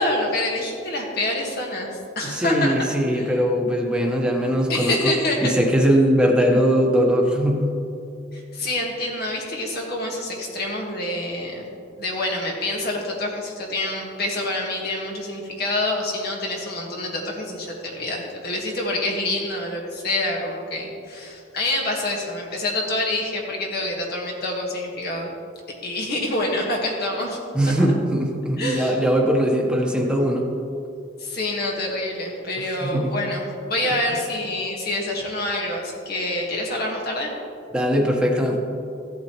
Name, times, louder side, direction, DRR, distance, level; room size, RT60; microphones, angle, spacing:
voice 1, 0.0-3.4 4.7-5.5 8.3-11.7 12.0-25.3 25.8-27.4 28.6-29.0 31.2-37.3, left 1 dB, 55° left, -1 dB, 1.7 m, -27 dB
voice 2, 2.2-5.1 5.4-7.7 27.5-30.5 32.8-33.1 37.7-38.6, equal, 5° right, 0 dB, 1.1 m, -20 dB
14.5 x 8.3 x 3.1 m, 2.6 s
head